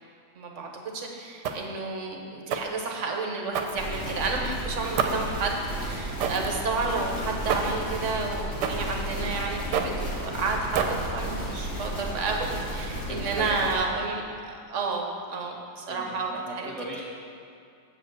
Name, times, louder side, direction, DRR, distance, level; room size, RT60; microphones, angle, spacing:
voice 1, 0.3-0.7 0.9-16.7, right 3 dB, 50° right, 1 dB, 1.1 m, -31 dB
sound 1, 1.4-1.8 2.5-2.8 3.5-4.2 5.0-5.4 6.2-6.6 7.5-7.8 8.6-8.9 9.7-10.1 10.7-11.2, right 6 dB, 75° right, 1.2 m, -28 dB
sound 2, 3.7-13.7, right 1 dB, 55° left, 2.6 m, -33 dB
voice 2, 13.0-13.6 15.9-17.0, equal, ahead, -6 dB, 2.0 m, -37 dB
7.8 x 4.9 x 7.3 m, 2.5 s
omnidirectional pair, 1.9 m